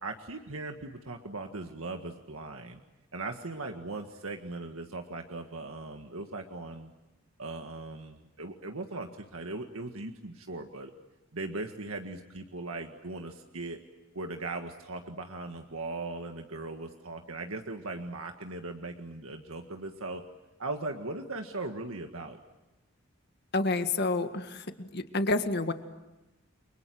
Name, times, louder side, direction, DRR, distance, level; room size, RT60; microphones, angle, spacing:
voice 1, 0.0-2.8 3.1-6.9 7.4-10.9 11.3-13.8 14.1-20.2 20.6-22.4, right 2 dB, 85° right, 4 dB, 1.8 m, -39 dB
voice 2, 23.5-25.7, left 2 dB, 50° left, 8 dB, 1.9 m, -29 dB
30.0 x 24.5 x 7.8 m, 1.0 s
head